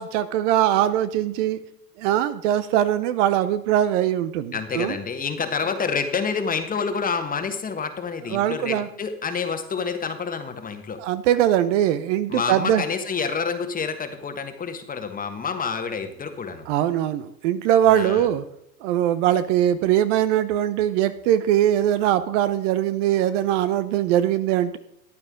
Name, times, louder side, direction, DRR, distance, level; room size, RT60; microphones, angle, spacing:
voice 1, 0.0-1.6 2.0-5.0 8.3-8.9 11.0-12.8 16.7-18.4 18.8-24.8, right 11 dB, 50° right, 13 dB, 0.9 m, -21 dB
voice 2, 4.5-11.0 12.3-16.7 17.9-18.3, left 5 dB, 15° left, 7 dB, 1.5 m, -28 dB
14.5 x 9.7 x 3.8 m, 0.78 s
hypercardioid pair, 105°, 49 cm